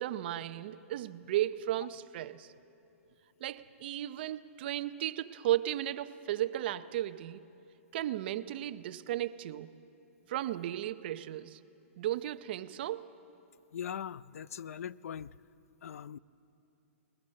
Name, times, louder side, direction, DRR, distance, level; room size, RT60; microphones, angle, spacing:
voice 1, 0.0-2.5 3.4-7.4 7.9-9.7 10.3-11.6 12.0-13.1, right 13 dB, 45° right, 0.7 m, -35 dB
voice 2, 13.7-15.3 15.8-16.2, left 8 dB, 80° left, 0.5 m, -40 dB
21.0 x 20.5 x 7.6 m
hypercardioid pair, 165°, 8 cm